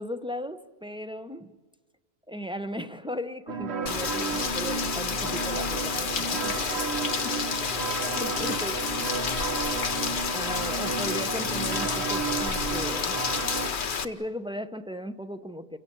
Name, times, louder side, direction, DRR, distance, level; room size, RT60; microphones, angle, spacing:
voice 1, 0.0-1.5 2.3-6.8 7.1-7.4 8.2-8.8 10.3-13.2 14.0-15.8, equal, 5° right, 9 dB, 0.7 m, -37 dB
sound 1, 3.5-13.7, right 6 dB, 70° right, 1.2 m, -33 dB
Rain, 3.9-14.0, left 6 dB, 50° left, 1.0 m, -30 dB
28.5 x 17.0 x 8.6 m, 1.4 s
omnidirectional pair, 1.1 m